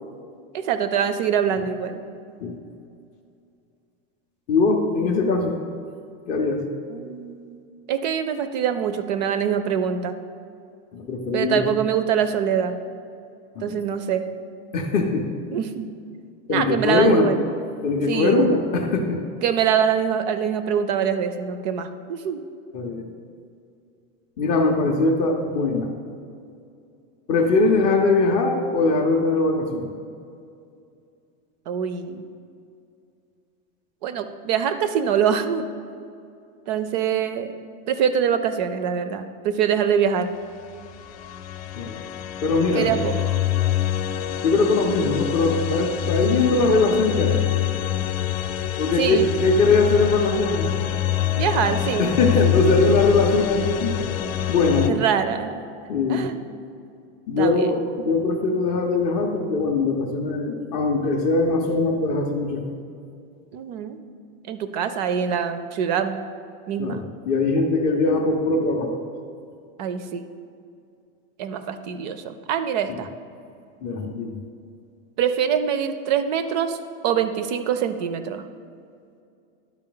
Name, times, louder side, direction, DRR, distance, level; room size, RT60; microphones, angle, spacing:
voice 1, 0.5-2.0 6.9-7.6 7.9-10.2 11.3-12.8 13.6-14.3 15.5-15.9 16.5-17.4 18.1-18.5 19.4-22.4 31.7-32.3 34.0-35.6 36.7-37.5 37.9-40.3 42.7-43.2 49.0-49.3 51.4-52.1 52.4-52.7 54.9-55.5 56.1-56.4 57.4-57.7 63.5-64.0 64.5-66.2 66.7-67.0 69.8-70.2 71.4-73.1 75.2-78.4, right 8 dB, 45° right, 10 dB, 0.4 m, -24 dB
voice 2, 4.5-5.6 6.3-6.6 10.9-11.7 13.6-13.7 14.7-15.3 16.5-17.3 17.8-19.2 22.7-23.1 24.4-25.9 27.3-29.9 41.7-42.0 42.4-42.9 44.4-47.4 48.8-50.7 52.0-54.0 54.5-55.0 55.9-56.3 57.3-62.6 66.8-68.9 72.9-73.0 73.8-74.4, left 3 dB, 25° left, 3 dB, 0.4 m, -21 dB
sound 1, 40.5-54.9, left 12 dB, 85° left, 0.7 m, -26 dB
11.5 x 4.8 x 3.8 m, 2.4 s
supercardioid pair, 175°, 30 cm